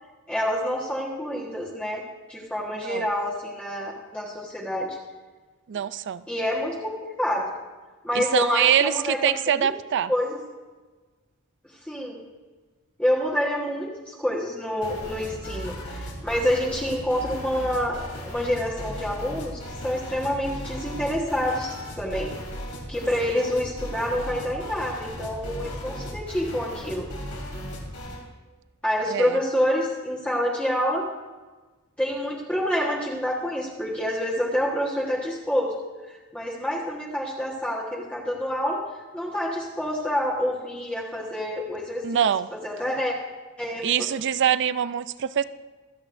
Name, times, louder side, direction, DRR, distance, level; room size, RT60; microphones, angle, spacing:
voice 1, 0.3-2.0 2.3-5.0 6.3-7.5 8.0-9.7 10.1-10.4 11.8-12.2 13.0-22.3 22.9-27.1 28.8-31.1 32.0-35.7 36.0-38.8 39.1-43.1 43.6-43.9, equal, 5° left, -5 dB, 1.3 m, -27 dB
voice 2, 5.7-6.2 8.1-10.1 29.1-29.4 42.0-42.5 43.8-45.4, right 9 dB, 55° right, 15 dB, 0.4 m, -24 dB
sound 1, 14.8-28.2, equal, 80° left, 2.8 m, -37 dB
25.0 x 8.5 x 2.6 m, 1.3 s
head